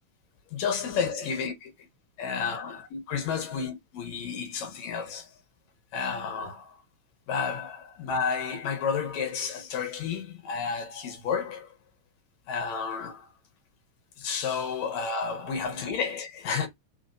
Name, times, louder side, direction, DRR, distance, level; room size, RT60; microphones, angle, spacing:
voice 1, 0.5-1.7 2.2-5.3 5.9-6.8 7.3-11.7 12.5-13.3 14.2-16.7, left 6 dB, 70° left, 2.1 m, -31 dB
4.9 x 4.3 x 2.6 m
omnidirectional pair, 3.5 m